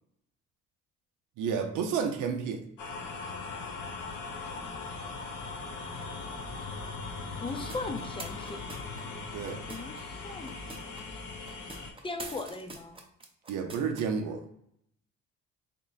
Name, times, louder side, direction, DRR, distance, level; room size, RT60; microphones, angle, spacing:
voice 1, 1.4-2.7 9.3-9.6 13.5-14.4, right 6 dB, 90° right, 4 dB, 0.7 m, -31 dB
sound 1, 2.8-11.9, left 4 dB, 85° left, 0.9 m, -39 dB
voice 2, 7.4-8.6 9.7-11.4 12.0-13.0, left 3 dB, 15° left, 6 dB, 0.6 m, -39 dB
sound 2, 7.4-10.0 10.4-11.0 11.4-14.0, right 2 dB, 20° right, 0.8 m, -45 dB
3.6 x 2.1 x 3.9 m, 0.72 s
cardioid pair, 90°, 30 cm